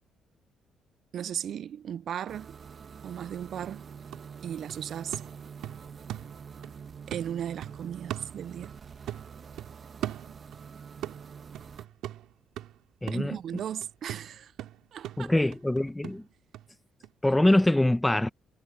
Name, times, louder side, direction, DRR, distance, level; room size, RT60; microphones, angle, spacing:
voice 1, 1.1-2.6 3.0-3.9 4.4-5.2 7.1-8.7 13.1-14.5 14.9-15.3, right 9 dB, 65° right, 0.3 m, -36 dB
sound 1, 2.3-11.9, right 6 dB, 45° right, 1.6 m, -46 dB
sound 2, 3.6-6.8 7.1-8.8 9.1-10.7 11.0-16.7 17.0-17.1, right 13 dB, 90° right, 2.5 m, -41 dB
voice 2, 13.0-13.4 15.2-16.2 17.2-18.3, left 1 dB, 10° left, 1.0 m, -24 dB
cardioid pair, 90°, 0 cm